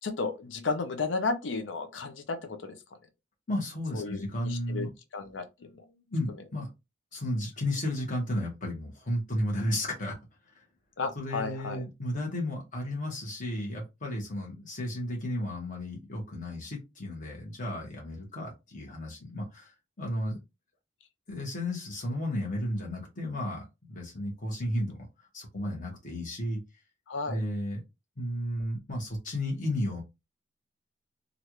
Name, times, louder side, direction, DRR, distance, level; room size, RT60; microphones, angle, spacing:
voice 1, 0.0-2.8 3.9-5.5 11.0-11.8 27.1-27.4, left 4 dB, 80° left, 0.6 m, -33 dB
voice 2, 3.5-4.9 5.6-6.7 7.1-10.1 11.2-19.7 20.0-20.4 21.3-25.1 25.3-26.6 27.3-27.8 28.2-30.0, left 1 dB, 45° left, 1.4 m, -33 dB
3.2 x 2.5 x 2.9 m
head